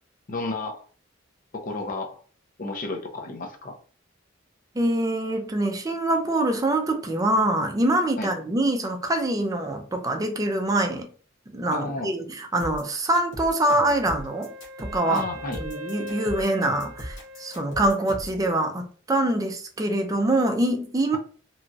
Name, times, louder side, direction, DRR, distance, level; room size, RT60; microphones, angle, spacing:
voice 1, 0.3-0.8 1.5-2.2 2.6-3.8 8.2-8.3 11.7-12.1 15.0-15.6, left 3 dB, 45° left, 0.5 m, -32 dB
voice 2, 4.8-11.1 11.5-14.5 14.8-15.2 15.6-21.2, right 1 dB, 20° right, 0.4 m, -24 dB
sound 1, 12.6-18.4, equal, 80° left, 1.2 m, -38 dB
Wind instrument woodwind instrument, 13.6-18.4, left 1 dB, 80° right, 0.5 m, -41 dB
2.9 x 2.3 x 2.6 m
head